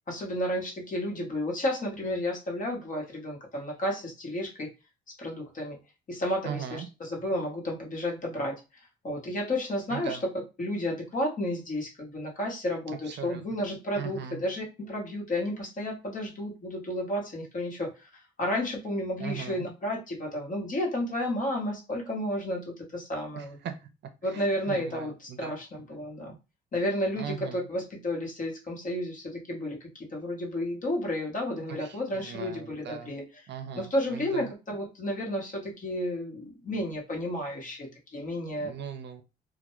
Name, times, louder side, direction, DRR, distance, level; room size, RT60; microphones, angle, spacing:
voice 1, 0.1-4.7 5.2-5.8 6.1-10.2 10.6-23.6 24.2-26.4 26.7-33.2 33.7-38.7, left 1 dB, 40° left, 0 dB, 1.0 m, -32 dB
voice 2, 6.4-6.9 9.9-10.2 13.0-13.4 13.9-14.4 19.2-19.7 23.4-23.9 24.3-25.6 27.2-27.7 31.7-33.1 33.5-34.5 38.6-39.2, right 8 dB, 60° right, 7 dB, 0.5 m, -39 dB
2.2 x 2.1 x 3.0 m, 0.28 s
cardioid pair, 90°, 20 cm